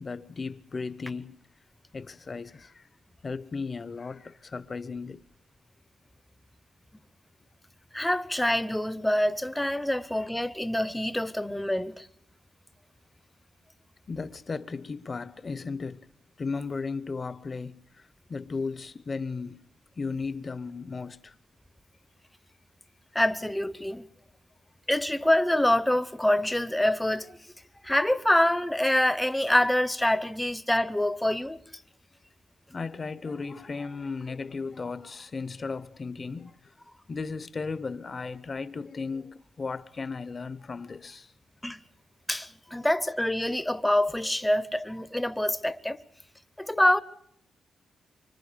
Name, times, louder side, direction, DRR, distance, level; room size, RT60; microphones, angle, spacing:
voice 1, 0.0-1.4 1.9-2.9 3.2-5.2 14.1-16.1 16.4-19.6 20.0-21.3 32.7-36.7 37.1-41.3, left 4 dB, 35° left, 0.9 m, -35 dB
voice 2, 7.9-12.1 23.1-24.0 24.9-27.4 27.8-31.8 41.6-41.8 42.3-46.0 46.6-47.0, left 1 dB, 5° left, 0.9 m, -26 dB
25.5 x 25.0 x 5.1 m
cardioid pair, 100°, 0 cm